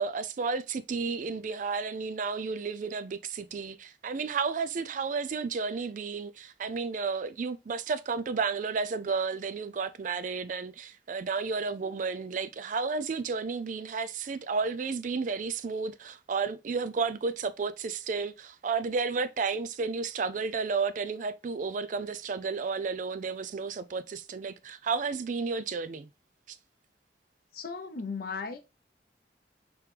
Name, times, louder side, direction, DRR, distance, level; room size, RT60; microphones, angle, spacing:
voice 1, 0.0-26.1, right 4 dB, 45° right, 0.3 m, -32 dB
voice 2, 27.5-28.6, left 4 dB, 55° left, 0.6 m, -36 dB
4.9 x 3.0 x 3.2 m
head